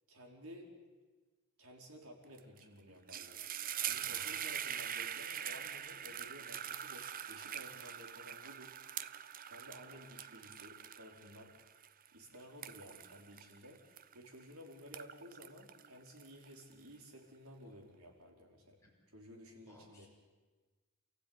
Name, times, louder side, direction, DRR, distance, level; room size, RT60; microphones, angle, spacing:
voice 1, 0.1-0.7 1.6-3.4 3.8-8.8 9.5-11.5 12.1-18.8 19.1-20.1, equal, 75° right, 1 dB, 4.9 m, -54 dB
sound 1, 2.4-2.6 2.9-14.4 14.8-16.7, right 9 dB, 40° right, 0.7 m, -43 dB
voice 2, 3.9-4.3 18.8-18.9 19.7-20.1, left 1 dB, 15° left, -3 dB, 5.8 m, -61 dB
28.5 x 15.0 x 9.9 m, 1.3 s
head